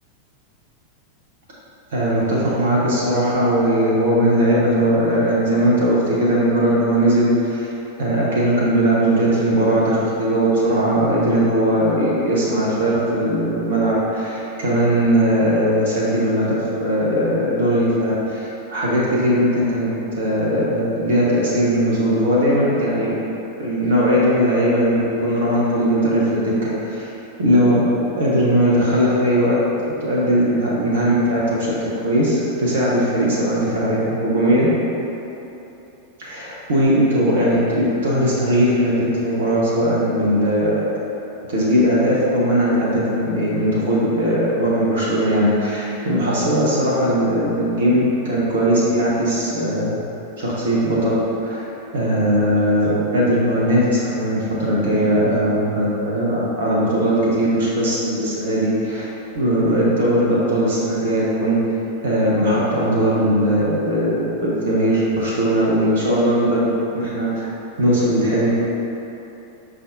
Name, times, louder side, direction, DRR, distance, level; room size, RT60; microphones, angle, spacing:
voice 1, 1.9-7.7 8.0-23.2 23.6-27.1 27.4-27.9 28.2-29.6 30.0-34.7 36.2-40.8 41.5-50.0 50.4-51.7 51.9-59.1 59.3-61.6 62.0-67.5 67.8-68.5, equal, 60° right, -6 dB, 0.7 m, -19 dB
5.3 x 3.3 x 2.6 m, 3.0 s
figure-of-eight pair, 90°, 0 cm